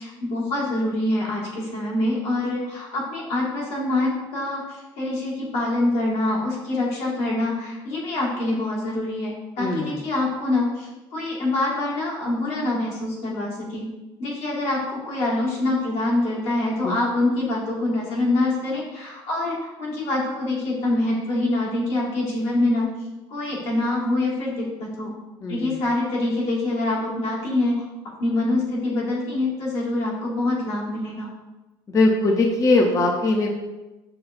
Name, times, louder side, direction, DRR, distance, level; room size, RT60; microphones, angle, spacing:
voice 1, 0.0-13.9 14.2-22.9 23.3-25.1 25.5-27.8 28.2-31.3, left 2 dB, 80° left, -5 dB, 1.4 m, -25 dB
voice 2, 9.6-10.0 16.8-17.0 25.4-25.8 31.9-33.5, left 2 dB, 25° left, 1 dB, 0.4 m, -21 dB
6.0 x 2.3 x 2.4 m, 1.1 s
supercardioid pair, 95°, 12 cm